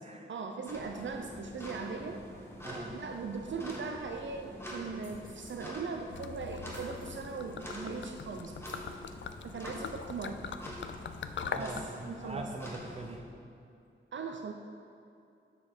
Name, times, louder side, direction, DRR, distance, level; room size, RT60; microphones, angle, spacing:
voice 1, 0.3-2.2 2.9-8.6 9.4-10.4 11.6-12.5 14.1-14.5, right 4 dB, 65° right, 4 dB, 0.6 m, -39 dB
sound 1, 0.7-13.2, equal, 10° left, 1.6 m, -45 dB
voice 2, 2.6-3.0 11.3-13.2, right 2 dB, 30° right, 3 dB, 0.8 m, -42 dB
sound 2, 5.0-5.6 6.7-7.2 8.0-8.1 8.6-8.9, left 1 dB, 40° left, 2.1 m, -57 dB
Gurgling / Liquid, 6.1-11.9, left 7 dB, 65° left, 0.4 m, -42 dB
9.6 x 7.1 x 4.3 m, 2.6 s
wide cardioid pair, 115°, 21 cm